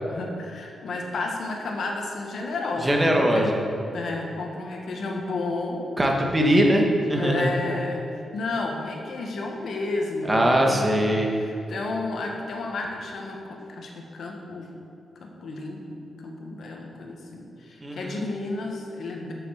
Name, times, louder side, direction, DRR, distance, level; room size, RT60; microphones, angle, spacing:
voice 1, 0.0-3.5 3.9-5.9 6.5-6.7 7.1-11.1 11.4-14.7 15.2-19.3, left 2 dB, 70° left, 1 dB, 1.4 m, -32 dB
voice 2, 2.8-3.6 6.0-7.5 10.3-11.3 17.8-18.2, equal, 20° right, 0 dB, 1.6 m, -21 dB
7.3 x 7.2 x 6.4 m, 2.8 s
cardioid pair, 70°, 0 cm